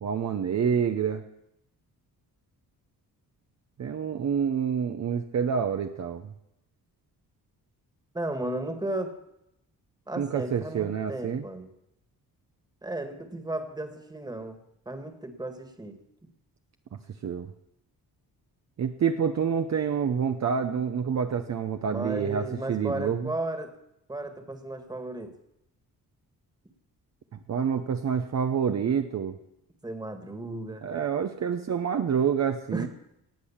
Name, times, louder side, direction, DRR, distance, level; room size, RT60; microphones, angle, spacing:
voice 1, 0.0-1.2 3.8-6.3 10.2-11.4 17.2-17.5 18.8-23.3 27.3-29.4 30.8-32.9, right 7 dB, 45° right, 6 dB, 0.9 m, -27 dB
voice 2, 8.1-9.1 10.1-11.7 12.8-14.6 14.9-15.9 21.9-23.7 24.1-25.3 29.8-30.9 32.7-32.9, right 1 dB, 10° right, 7 dB, 1.9 m, -34 dB
18.5 x 8.4 x 7.3 m, 0.83 s
wide cardioid pair, 140°, 38 cm